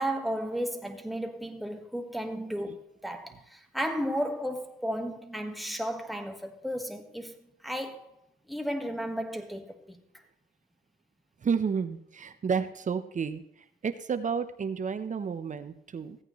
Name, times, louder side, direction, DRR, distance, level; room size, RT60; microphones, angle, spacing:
voice 1, 0.0-8.2 8.5-10.0, equal, ahead, 1.5 m, -34 dB
voice 2, 11.4-16.2, right 6 dB, 40° right, 0.9 m, -31 dB
15.5 x 8.9 x 3.1 m
cardioid pair, 90°, 20 cm